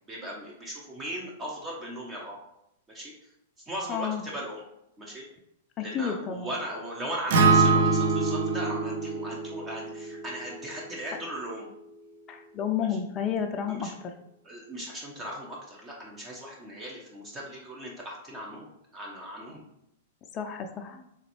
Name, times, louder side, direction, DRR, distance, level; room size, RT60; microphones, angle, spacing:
voice 1, 0.1-2.4 2.9-3.3 3.7-4.6 5.0-5.2 5.8-11.7 13.7-13.9 14.4-19.6, right 1 dB, 20° right, -2 dB, 0.8 m, -38 dB
voice 2, 3.9-4.2 5.8-6.5 12.3-14.1 20.3-21.1, left 7 dB, 30° left, 4 dB, 0.4 m, -31 dB
Acoustic guitar, 7.3-11.5, right 3 dB, 65° right, 0.5 m, -25 dB
3.9 x 3.2 x 3.0 m, 0.80 s
hypercardioid pair, 115°, 0 cm